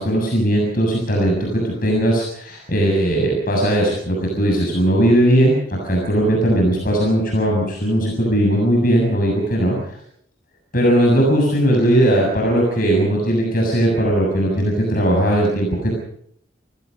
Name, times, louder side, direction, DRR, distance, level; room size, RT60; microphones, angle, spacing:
voice 1, 0.0-9.9 10.7-15.9, right 1 dB, 50° left, -1 dB, 7.1 m, -18 dB
30.0 x 17.5 x 5.6 m, 0.69 s
head